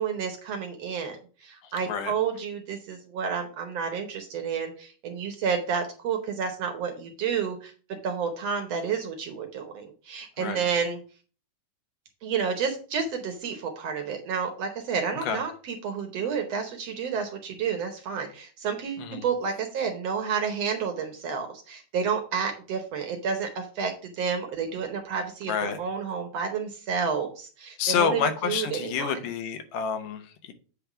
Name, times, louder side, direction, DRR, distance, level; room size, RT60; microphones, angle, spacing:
voice 1, 0.0-7.7 8.0-11.0 12.2-29.2, right 6 dB, 65° right, 5 dB, 1.7 m, -30 dB
voice 2, 1.6-2.1 10.4-10.7 15.2-15.4 19.0-19.3 25.5-25.8 27.8-30.5, left 7 dB, 85° left, 8 dB, 2.6 m, -29 dB
8.2 x 3.5 x 5.9 m, 0.39 s
omnidirectional pair, 3.7 m